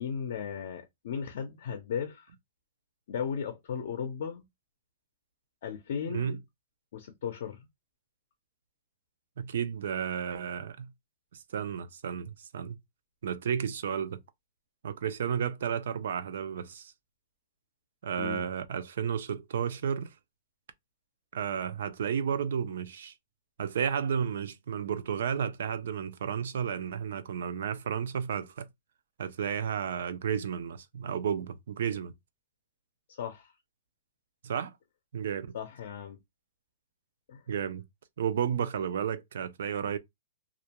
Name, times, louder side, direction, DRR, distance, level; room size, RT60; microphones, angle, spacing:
voice 1, 0.0-2.3 3.1-4.4 5.6-6.4 6.9-7.7 18.2-18.5 33.2-33.5 35.5-36.2 37.3-37.4, left 7 dB, 55° left, 0.5 m, -36 dB
voice 2, 9.4-10.9 11.3-12.8 13.2-14.2 14.8-16.9 18.0-20.1 21.3-23.1 23.6-28.7 29.2-32.1 34.4-34.7 35.1-35.5 37.5-37.8 38.2-40.0, right 8 dB, 65° right, 0.4 m, -32 dB
2.4 x 2.2 x 2.8 m
hypercardioid pair, 175°, 0 cm